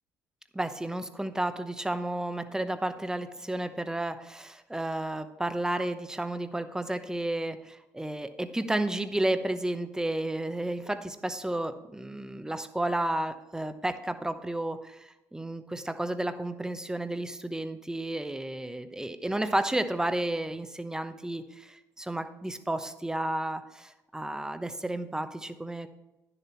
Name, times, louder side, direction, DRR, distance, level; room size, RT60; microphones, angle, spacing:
voice 1, 0.5-25.9, right 1 dB, 10° right, 10 dB, 0.8 m, -32 dB
10.0 x 6.9 x 4.4 m, 0.97 s
supercardioid pair, 75°, 8 cm